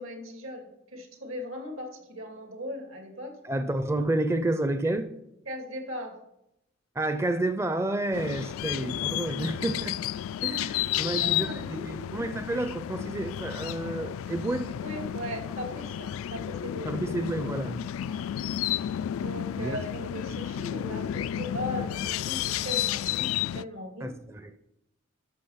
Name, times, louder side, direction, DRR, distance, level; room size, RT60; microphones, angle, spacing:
voice 1, 0.0-3.3 5.5-6.1 10.9-11.9 14.8-17.0 18.0-18.3 19.1-24.1, equal, 80° right, 2.7 m, -38 dB
voice 2, 3.4-5.1 7.0-10.0 10.4-14.7 16.9-17.8 19.6-19.8 24.0-24.6, right 1 dB, 15° right, 0.5 m, -30 dB
sound 1, 8.1-23.6, left 11 dB, 80° left, 0.3 m, -32 dB
13.5 x 6.2 x 5.8 m
head